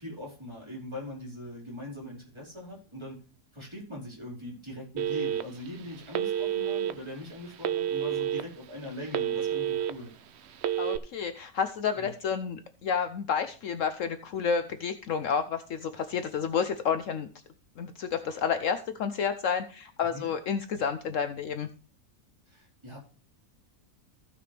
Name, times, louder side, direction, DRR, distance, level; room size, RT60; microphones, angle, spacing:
voice 1, 0.0-3.2 3.5-10.1 11.9-12.1 20.1-20.3 22.5-23.0, left 1 dB, 20° right, -4 dB, 4.4 m, -41 dB
Telephone, 5.0-5.7 6.1-6.9 7.6-8.4 8.8-9.9 10.6-11.0, right 10 dB, 60° right, 0.8 m, -29 dB
voice 2, 10.8-17.3 17.8-21.7, left 6 dB, 65° left, 10 dB, 1.0 m, -30 dB
15.5 x 5.9 x 3.3 m, 0.38 s
omnidirectional pair, 1.5 m